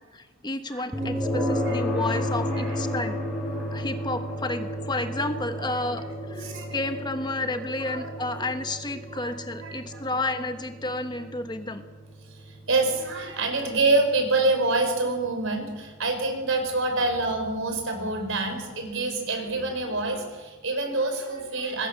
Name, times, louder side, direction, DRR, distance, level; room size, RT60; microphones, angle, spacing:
voice 1, 0.1-3.2 3.7-11.8, left 2 dB, 20° left, 8 dB, 1.2 m, -31 dB
sound 1, 0.9-15.9, equal, ahead, 7.2 m, -33 dB
voice 2, 2.5-2.8 3.5-3.7 6.2-6.8 7.5-8.4 9.2-9.3 9.6-10.0 12.3-21.9, right 2 dB, 60° right, 5 dB, 5.5 m, -27 dB
26.5 x 20.5 x 7.1 m, 1.3 s
head